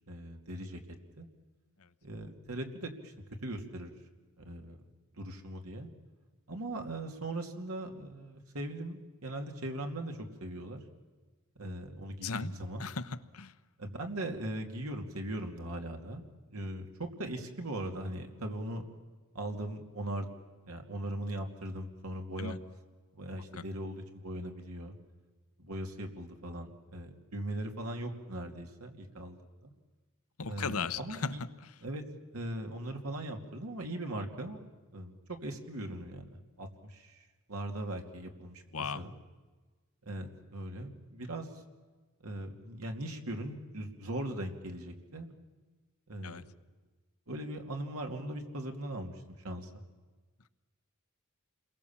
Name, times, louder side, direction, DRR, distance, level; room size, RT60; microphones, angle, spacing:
voice 1, 0.1-0.8 1.2-1.3 2.0-3.1 3.4-3.9 4.4-4.8 5.1-5.9 6.5-10.8 11.6-12.9 13.8-18.8 19.3-20.3 20.6-22.5 23.1-24.9 25.6-29.7 30.5-31.4 31.8-32.0 32.3-34.6 34.9-37.2 37.5-38.6 38.9-39.2 40.0-41.5 42.2-45.3 46.1-46.4 47.3-49.1 49.4-49.8, right 1 dB, 85° right, 3 dB, 2.6 m, -39 dB
voice 2, 12.2-12.5 12.8-13.5 22.4-22.6 23.5-23.6 30.4-31.7 38.7-39.0 46.2-46.4, left 5 dB, 80° left, 12 dB, 1.0 m, -37 dB
28.5 x 22.5 x 7.3 m, 1.3 s
head